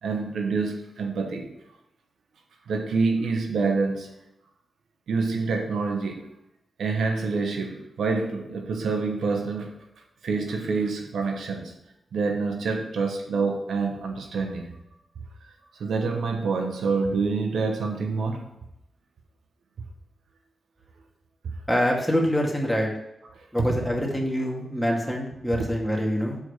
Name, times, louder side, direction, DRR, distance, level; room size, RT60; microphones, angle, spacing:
voice 1, 0.0-1.5 2.7-4.1 5.1-6.3 6.8-9.8 10.2-11.7 12.1-14.8 15.4-15.5 15.8-18.5 23.3-23.5 25.5-25.6, right 4 dB, 90° right, 4 dB, 1.0 m, -27 dB
voice 2, 21.7-22.9 23.5-26.4, equal, 5° left, -1 dB, 2.2 m, -25 dB
6.9 x 4.7 x 6.6 m, 0.85 s
cardioid pair, 60°, 0 cm